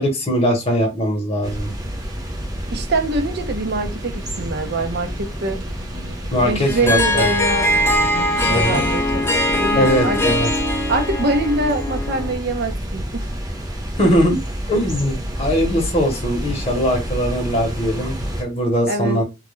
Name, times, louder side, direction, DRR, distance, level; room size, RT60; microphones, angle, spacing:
voice 1, 0.0-1.7 6.3-7.3 8.5-8.8 9.7-10.5 14.0-14.4 14.7-19.2, equal, 30° left, 0.8 m, -20 dB
sound 1, 1.4-18.4, equal, 20° right, 0.7 m, -29 dB
Snare drum, 1.8-9.3, equal, 75° right, 0.9 m, -38 dB
voice 2, 2.7-5.6 6.4-7.7 8.3-10.2 10.9-13.4 18.9-19.2, right 2 dB, 55° right, 0.6 m, -24 dB
Harp, 6.6-12.4, left 1 dB, 10° left, 0.4 m, -21 dB
2.2 x 2.2 x 3.0 m
head